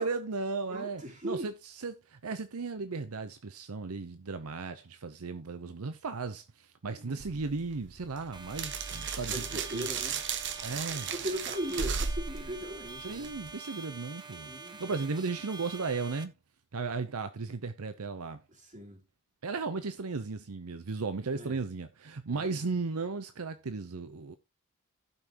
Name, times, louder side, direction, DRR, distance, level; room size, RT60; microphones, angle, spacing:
voice 1, 0.0-9.5 9.7-9.9 10.6-11.1 13.0-14.5 14.8-16.3 16.7-18.4 19.4-24.4, right 4 dB, 75° right, 0.7 m, -35 dB
voice 2, 0.7-1.5 6.9-7.4 9.3-10.2 10.9-13.4 14.4-15.0 18.5-19.0 21.3-21.6 22.3-22.5, right 1 dB, 35° right, 3.2 m, -39 dB
sound 1, 7.2-13.5, right 6 dB, 55° right, 1.0 m, -36 dB
sound 2, 8.3-16.2, right 4 dB, 20° right, 1.0 m, -46 dB
16.0 x 5.7 x 2.9 m
head